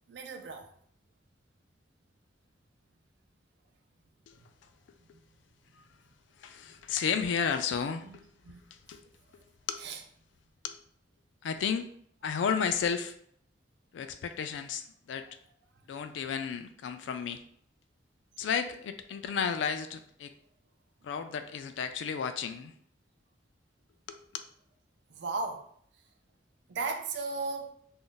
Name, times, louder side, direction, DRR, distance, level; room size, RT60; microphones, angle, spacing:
voice 1, 0.1-0.7 8.0-8.2 8.4-8.6 9.8-10.0 25.1-25.7 26.7-27.7, right 3 dB, 65° right, 0.4 m, -35 dB
voice 2, 6.4-8.2 8.7-9.0 9.7-9.8 10.6-10.8 11.4-11.9 12.2-13.1 13.9-15.3 15.9-17.4 18.4-20.3 21.0-22.7 24.1-24.2, left 6 dB, 75° left, 0.3 m, -32 dB
2.4 x 2.1 x 3.8 m
head